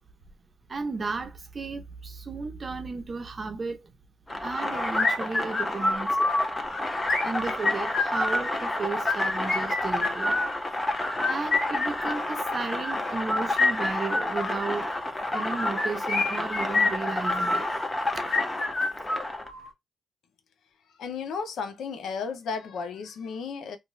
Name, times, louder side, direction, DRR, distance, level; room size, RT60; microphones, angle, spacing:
voice 1, 0.7-3.9 4.4-6.3 7.2-10.4 11.3-14.9 15.3-17.7 18.1-18.2 19.0-19.1, right 4 dB, 40° right, 0.6 m, -34 dB
sound 1, 4.3-19.5, left 1 dB, 20° left, 0.6 m, -31 dB
sound 2, 4.9-6.4 7.0-8.5 8.9-10.5 11.0-12.6 13.2-14.6 15.3-17.6 18.2-19.7, left 2 dB, 45° left, 1.3 m, -27 dB
voice 2, 21.0-23.8, left 5 dB, 80° left, 0.5 m, -34 dB
2.5 x 2.3 x 3.0 m
cardioid pair, 90°, 0 cm